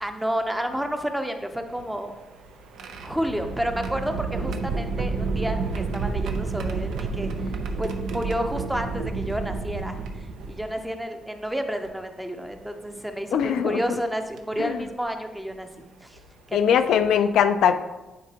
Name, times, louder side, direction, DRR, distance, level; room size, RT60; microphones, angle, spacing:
voice 1, 0.0-2.1 3.0-7.3 7.8-10.0 10.5-15.7 16.0-16.2 16.5-16.8, equal, 5° right, 6 dB, 0.6 m, -30 dB
sound 1, 1.6-10.9 11.8-11.9 13.4-13.6 14.4-14.6 16.2-16.3 16.7-16.9, right 4 dB, 80° right, 0.5 m, -30 dB
voice 2, 13.3-13.8 14.6-14.8 16.5-17.8, left 8 dB, 75° left, 9 dB, 0.3 m, -21 dB
9.1 x 3.7 x 2.8 m, 1.1 s
cardioid pair, 90°, 0 cm